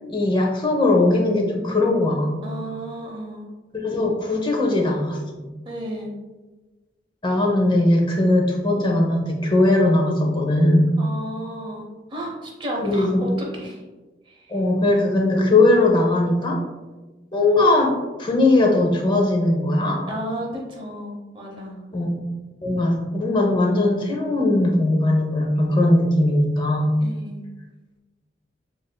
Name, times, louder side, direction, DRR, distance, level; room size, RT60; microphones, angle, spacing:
voice 1, 0.0-2.5 3.8-5.5 7.2-11.0 12.8-13.3 14.5-16.6 17.3-20.1 21.9-22.2 22.6-27.0, left 2 dB, 25° left, 0 dB, 0.7 m, -19 dB
voice 2, 2.4-3.5 5.7-6.1 11.0-13.8 14.3-14.5 20.1-21.8 27.0-27.4, right 1 dB, 30° right, -1 dB, 0.8 m, -33 dB
6.9 x 2.6 x 2.2 m, 1.2 s
head